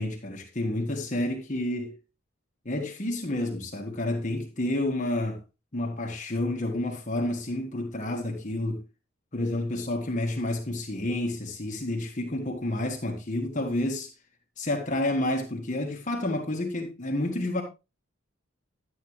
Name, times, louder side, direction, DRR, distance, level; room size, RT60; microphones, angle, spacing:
voice 1, 0.0-1.9 2.6-5.4 5.7-8.8 9.3-14.1 14.6-17.6, left 1 dB, 40° left, 1.5 m, -29 dB
11.5 x 8.5 x 3.1 m
head